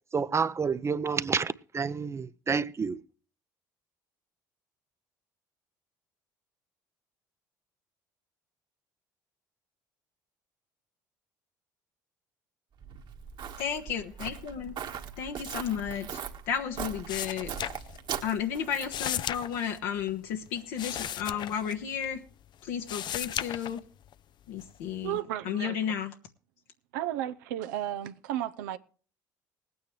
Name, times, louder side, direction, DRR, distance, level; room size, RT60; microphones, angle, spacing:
voice 1, 0.1-3.0, right 5 dB, 30° right, 0.7 m, -29 dB
Walk footsteps, 12.8-19.1, right 7 dB, 50° right, 1.7 m, -40 dB
voice 2, 13.6-14.7 15.2-16.2 16.5-17.5 18.2-22.2 22.6-23.8 24.5-25.2 25.4-26.1, left 8 dB, 70° left, 1.3 m, -33 dB
sound 1, 17.1-18.3 18.5-22.3 22.7-24.1 24.6-25.2, left 10 dB, 50° left, 0.6 m, -36 dB
voice 3, 25.0-25.8 26.9-28.8, right 12 dB, 75° right, 0.7 m, -33 dB
20.5 x 9.2 x 3.2 m
hypercardioid pair, 55°, 10 cm